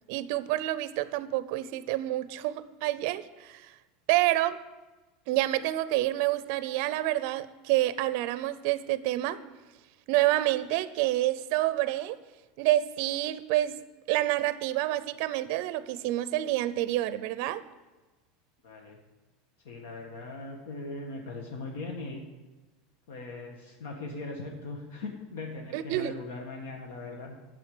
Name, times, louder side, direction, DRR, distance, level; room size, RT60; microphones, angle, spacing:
voice 1, 0.1-3.7 4.1-4.6 5.3-9.4 10.1-12.2 12.6-13.8 14.1-17.6 25.7-26.1, right 15 dB, 55° right, 15 dB, 0.5 m, -28 dB
voice 2, 18.6-19.0 19.6-22.2 23.1-27.3, left 2 dB, 80° left, 2 dB, 1.5 m, -39 dB
9.3 x 7.0 x 6.6 m, 1.2 s
supercardioid pair, 160°, 0 cm